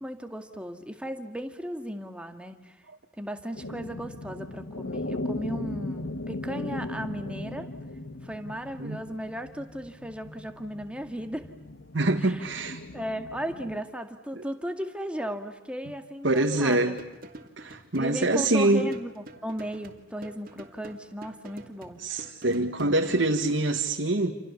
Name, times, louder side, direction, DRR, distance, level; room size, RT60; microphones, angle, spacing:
voice 1, 0.0-2.8 3.2-7.7 8.2-11.5 12.2-12.4 12.9-17.0 17.7-22.0, equal, 5° right, 2.1 m, -36 dB
sound 1, 3.5-13.8, left 2 dB, 80° left, 1.5 m, -38 dB
voice 2, 11.9-12.8 16.2-17.0 17.6-18.9 22.0-24.3, right 2 dB, 85° right, 2.0 m, -25 dB
sound 2, 16.3-23.2, right 1 dB, 50° right, 2.7 m, -48 dB
29.0 x 28.5 x 7.2 m
head